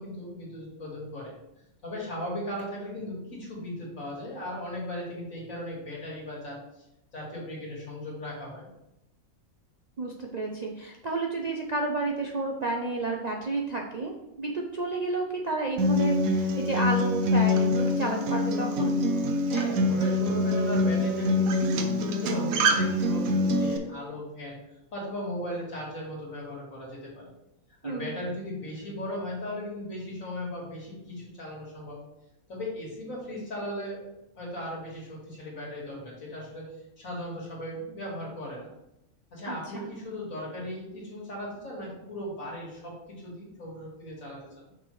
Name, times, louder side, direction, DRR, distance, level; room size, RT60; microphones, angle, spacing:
voice 1, 0.0-1.3 1.8-6.8 7.1-8.7 19.5-24.6 24.9-27.3 27.8-32.0 32.5-34.0 34.4-38.7 39.3-44.4, left 1 dB, 70° left, -4 dB, 2.6 m, -37 dB
voice 2, 10.0-19.0 27.8-28.2 39.4-39.9, right 3 dB, 45° right, 0 dB, 0.5 m, -31 dB
Acoustic guitar, 15.8-23.8, left 1 dB, 80° right, 1.2 m, -25 dB
6.2 x 5.9 x 3.2 m, 0.89 s
omnidirectional pair, 1.5 m